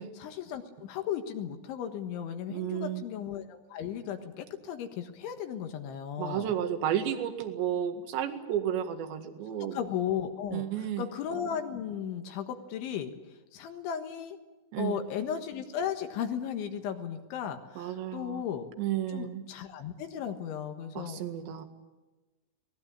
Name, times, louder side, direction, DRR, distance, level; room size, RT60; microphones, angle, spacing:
voice 1, 0.2-6.5 9.7-14.4 14.8-18.7 19.1-21.2 21.5-21.6, left 8 dB, 70° left, 6 dB, 3.7 m, -35 dB
voice 2, 2.5-3.0 6.2-9.8 10.5-11.1 14.7-15.0 17.8-18.4 18.8-19.4 21.0-21.6, right 10 dB, 65° right, 7 dB, 3.9 m, -32 dB
24.5 x 19.0 x 8.8 m, 1.2 s
omnidirectional pair, 5.8 m